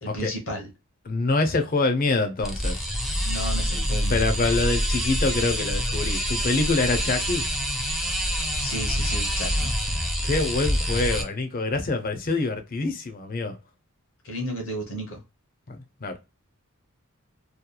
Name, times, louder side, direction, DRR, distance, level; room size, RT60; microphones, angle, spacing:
voice 1, 0.0-0.7 3.2-4.2 8.6-9.7 14.2-15.2, equal, 70° left, 1.0 m, -33 dB
voice 2, 1.1-2.8 3.7-3.8 4.1-7.5 10.0-13.6 15.7-16.2, left 3 dB, 45° left, 0.6 m, -25 dB
sound 1, 2.4-11.2, equal, ahead, 0.5 m, -26 dB
2.9 x 2.2 x 2.2 m
head